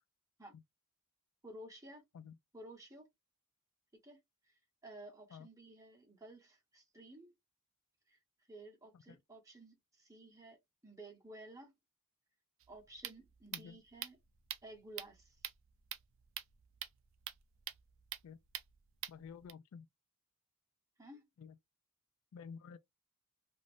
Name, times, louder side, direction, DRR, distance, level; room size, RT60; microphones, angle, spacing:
voice 1, 1.4-2.0 2.5-3.1 4.0-4.2 4.5-4.6 4.8-7.3 8.1-8.2 8.5-11.7 12.7-14.2 14.6-15.4 21.0-21.2, right 1 dB, 15° right, 1.1 m, -54 dB
sound 1, 12.6-19.5, right 12 dB, 60° right, 0.4 m, -47 dB
voice 2, 19.1-19.9 21.4-21.6 22.3-22.8, left 6 dB, 65° left, 0.3 m, -51 dB
2.6 x 2.4 x 3.2 m
head